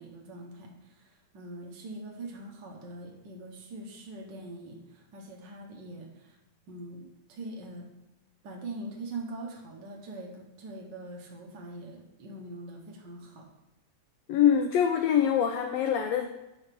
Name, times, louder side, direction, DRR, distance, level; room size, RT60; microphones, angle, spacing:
voice 1, 0.0-6.4 6.7-7.9 8.4-13.5, right 2 dB, 80° right, 1 dB, 1.0 m, -43 dB
voice 2, 14.3-16.3, left 9 dB, 85° left, 6 dB, 1.4 m, -24 dB
5.8 x 5.0 x 5.9 m, 0.97 s
omnidirectional pair, 3.4 m